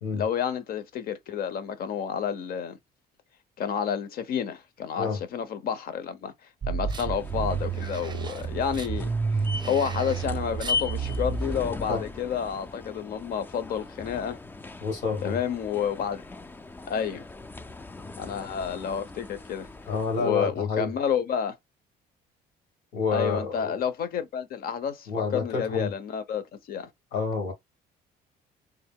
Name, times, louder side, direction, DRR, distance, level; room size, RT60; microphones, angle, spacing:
voice 1, 0.1-2.8 3.6-6.3 6.7-9.1 9.6-14.4 15.2-16.2 16.9-17.2 18.2-19.7 20.2-21.6 23.1-26.9, left 8 dB, 60° left, 0.8 m, -30 dB
sound 1, 6.6-11.6, right 5 dB, 25° right, 0.6 m, -30 dB
sound 2, 6.9-20.4, left 4 dB, 10° left, 0.3 m, -39 dB
voice 2, 14.8-15.4 19.9-20.9 22.9-23.8 25.1-25.9 27.1-27.5, left 4 dB, 85° left, 1.9 m, -28 dB
3.5 x 2.6 x 3.6 m
cardioid pair, 110°, 17 cm